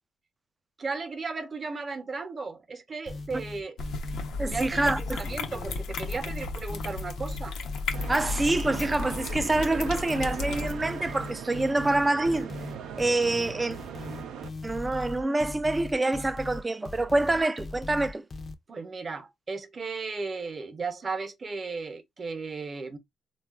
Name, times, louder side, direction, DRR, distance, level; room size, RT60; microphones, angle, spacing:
voice 1, 0.8-3.8 4.4-7.6 18.7-23.0, right 4 dB, 40° right, 0.7 m, -35 dB
sound 1, 3.1-18.5, left 3 dB, 40° left, 0.5 m, -40 dB
sound 2, 3.8-10.7, left 3 dB, 80° left, 0.7 m, -34 dB
voice 2, 4.4-5.2 8.1-12.5 13.0-13.8 14.6-18.2, right 2 dB, 20° right, 0.3 m, -26 dB
sound 3, 7.9-14.5, right 7 dB, 80° right, 0.5 m, -40 dB
3.7 x 2.3 x 2.3 m
cardioid pair, 90°, 0 cm